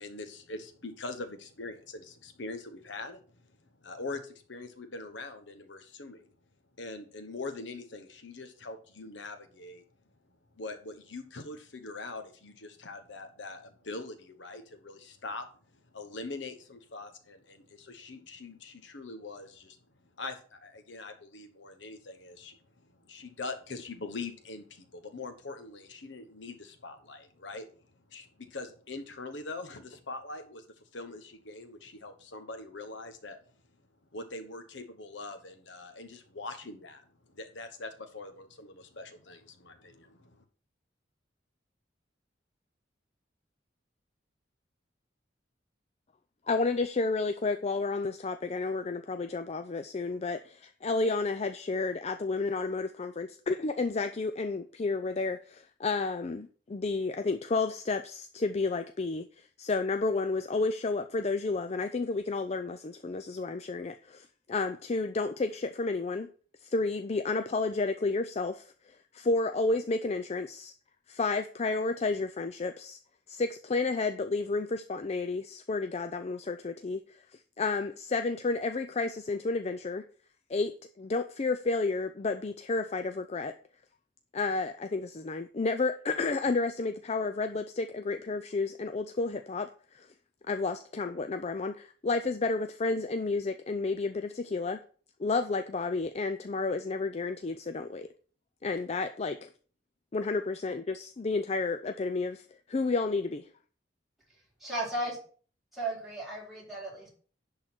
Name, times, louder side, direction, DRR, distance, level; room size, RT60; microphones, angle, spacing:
voice 1, 0.0-6.3 6.8-9.8 10.5-19.8 20.2-22.6 22.8-27.7 28.1-33.4 34.1-40.4, left 3 dB, 75° left, 8 dB, 1.1 m, -43 dB
voice 2, 46.5-59.3 59.6-66.3 66.7-68.6 69.1-70.7 71.1-73.0 73.3-77.0 77.6-80.0 80.5-80.7 81.0-83.5 84.3-90.1 90.5-94.8 95.2-98.1 98.6-99.5 100.1-103.5, left 3 dB, 35° left, 8 dB, 0.4 m, -31 dB
voice 3, 104.6-105.2 105.7-107.1, right 1 dB, ahead, -5 dB, 3.8 m, -35 dB
10.5 x 3.9 x 5.9 m, 0.42 s
head